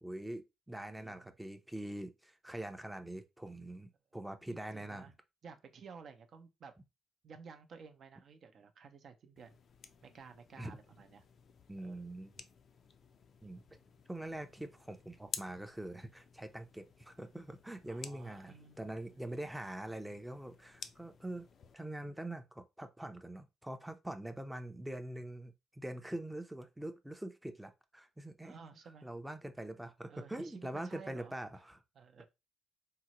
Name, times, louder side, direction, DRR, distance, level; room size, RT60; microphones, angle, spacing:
voice 1, 0.0-5.1 10.6-10.8 11.7-12.3 13.4-13.8 14.1-21.5 21.7-28.5 29.0-31.8, right 1 dB, 5° right, 0.5 m, -44 dB
voice 2, 1.0-1.3 4.5-5.1 5.4-6.7 7.2-9.6 10.0-11.2 11.8-12.1 17.9-19.2 28.4-29.1 30.1-31.4 31.9-32.3, right 5 dB, 55° right, 0.6 m, -54 dB
sound 1, 9.4-21.8, left 6 dB, 55° left, 0.3 m, -53 dB
3.7 x 2.1 x 2.9 m
cardioid pair, 90°, 0 cm